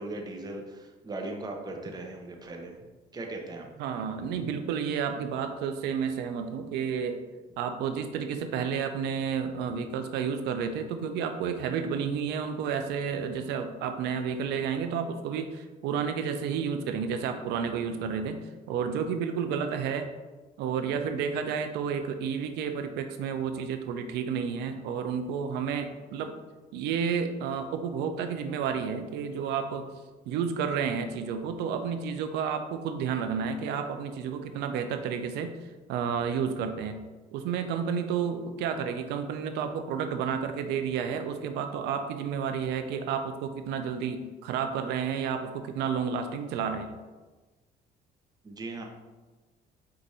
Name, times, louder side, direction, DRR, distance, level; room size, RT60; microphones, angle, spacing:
voice 1, 0.0-2.8 3.1-3.7 48.4-48.9, right 2 dB, 25° right, 1 dB, 0.8 m, -38 dB
voice 2, 3.8-7.2 7.6-18.4 18.7-20.1 20.6-26.3 26.7-29.9 30.3-37.0 37.3-46.9, right 7 dB, 85° right, 8 dB, 0.5 m, -31 dB
4.7 x 2.6 x 4.1 m, 1.2 s
cardioid pair, 110°, 17 cm